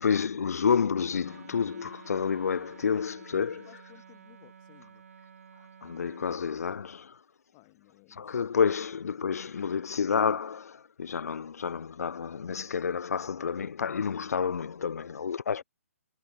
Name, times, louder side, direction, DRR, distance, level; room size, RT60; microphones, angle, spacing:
voice 1, 0.0-3.7 5.8-7.2 8.2-15.6, left 6 dB, 80° left, 0.5 m, -29 dB
Wind instrument woodwind instrument, 1.2-6.4, right 7 dB, 65° right, 4.5 m, -52 dB
voice 2, 3.2-5.0 7.5-8.8 15.5-15.6, left 33 dB, 30° left, 3.9 m, -58 dB
hypercardioid pair, 150°, 8 cm